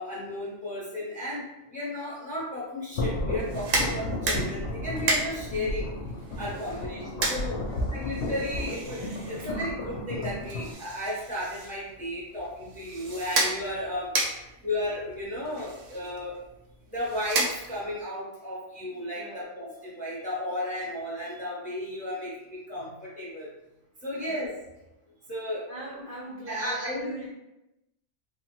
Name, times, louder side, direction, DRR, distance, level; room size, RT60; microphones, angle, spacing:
voice 1, 0.0-5.9 6.4-7.6 7.9-14.2 14.6-16.4 16.9-23.5 24.0-24.5 25.3-25.7 26.5-27.1, left 1 dB, 10° left, -6 dB, 0.6 m, -34 dB
sound 1, 2.9-10.7, left 1 dB, 65° left, 0.7 m, -33 dB
sound 2, 3.4-18.0, right 2 dB, 80° right, 0.9 m, -34 dB
voice 2, 6.6-6.9 7.6-7.9 14.3-14.7 19.1-19.5 24.1-24.4 25.7-27.3, right 1 dB, 55° right, -4 dB, 0.7 m, -40 dB
3.1 x 2.1 x 3.0 m, 0.94 s
omnidirectional pair, 1.3 m